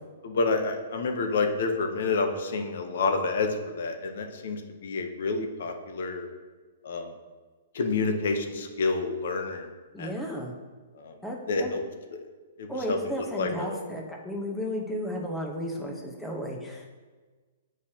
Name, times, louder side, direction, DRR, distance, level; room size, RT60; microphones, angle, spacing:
voice 1, 0.2-6.3 6.8-7.1 7.7-9.7 10.0-10.1 11.0-11.1 11.5-11.8 12.6-13.0 13.4-13.8, left 3 dB, 65° left, 5 dB, 0.9 m, -28 dB
voice 2, 9.9-10.5 11.2-11.7 12.7-16.9, equal, 5° left, -1 dB, 1.0 m, -34 dB
8.0 x 4.8 x 2.9 m, 1.4 s
hypercardioid pair, 150°, 0 cm